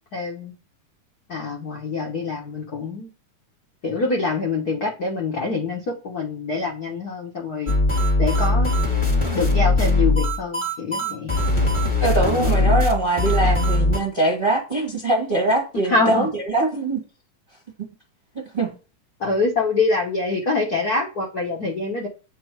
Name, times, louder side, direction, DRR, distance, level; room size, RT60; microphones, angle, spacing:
voice 1, 0.1-0.5 1.3-3.1 3.8-7.7 8.2-8.7 9.3-11.3 12.2-12.7 13.4-13.5 15.9-16.3 19.2-22.1, left 3 dB, 65° left, 0.9 m, -25 dB
sound 1, 7.7-14.0, left 2 dB, 15° left, 1.3 m, -20 dB
voice 2, 12.0-17.0 18.3-18.7, right 2 dB, 30° right, 0.9 m, -22 dB
8.5 x 4.5 x 4.6 m
omnidirectional pair, 3.7 m